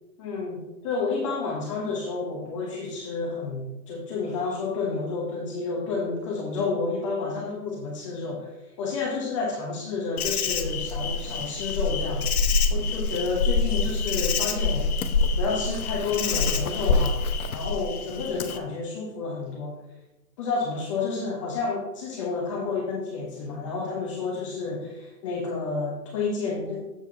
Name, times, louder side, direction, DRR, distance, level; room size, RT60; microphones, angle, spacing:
voice 1, 0.2-12.3 12.7-14.9 15.4-17.2 17.5-19.8 20.4-26.9, left 4 dB, 20° left, -3 dB, 0.9 m, -30 dB
Insect, 10.2-18.6, left 4 dB, 65° left, 0.8 m, -26 dB
7.5 x 4.7 x 3.9 m, 0.99 s
hypercardioid pair, 150°, 47 cm